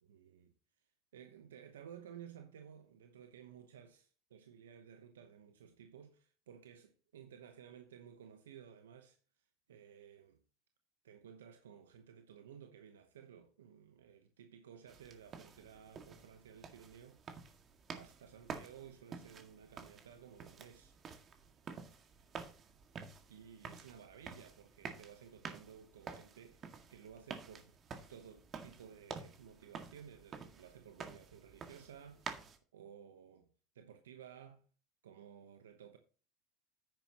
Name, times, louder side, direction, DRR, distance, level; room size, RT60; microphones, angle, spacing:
voice 1, 0.0-0.5 1.1-9.2 9.7-10.4 11.0-17.2 17.9-21.0 23.3-27.8 28.1-32.3 32.7-33.5 33.7-34.6 35.0-36.0, right 8 dB, 90° right, 0.9 m, -56 dB
sound 1, 14.9-32.6, right 5 dB, 35° right, 1.9 m, -50 dB
10.0 x 8.9 x 2.9 m
hypercardioid pair, 95°, 0 cm